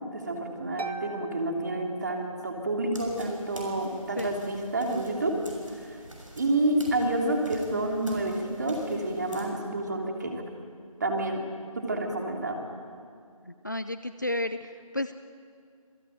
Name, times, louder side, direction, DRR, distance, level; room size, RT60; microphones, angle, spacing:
voice 1, 0.1-5.4 5.7-6.0 6.4-10.4 11.0-11.4 11.8-12.6, right 1 dB, 30° right, 2 dB, 3.1 m, -29 dB
Harp, 0.8-2.7, right 3 dB, 85° right, 1.7 m, -41 dB
sound 1, 2.9-9.5, right 1 dB, 60° right, 6.7 m, -46 dB
voice 2, 13.4-15.1, left 1 dB, 30° left, 11 dB, 0.5 m, -32 dB
27.0 x 18.0 x 9.2 m, 2.3 s
figure-of-eight pair, 165°, 19 cm